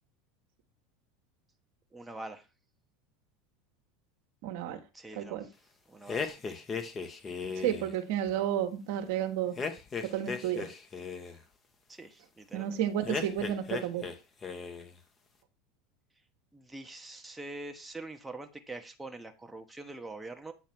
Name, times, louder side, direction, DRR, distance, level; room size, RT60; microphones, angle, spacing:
voice 1, 1.9-2.5 4.9-5.5 5.9-6.3 11.9-12.8 16.5-20.5, right 2 dB, 10° right, 1.1 m, -44 dB
voice 2, 4.4-4.8 5.2-5.5 7.5-9.5 10.0-10.7 12.5-14.1, right 10 dB, 70° right, 1.3 m, -31 dB
sound 1, 6.1-7.9 9.6-11.4 13.0-14.2 14.4-14.9, left 5 dB, 30° left, 1.3 m, -36 dB
8.3 x 3.1 x 6.1 m
hypercardioid pair, 90°, 0 cm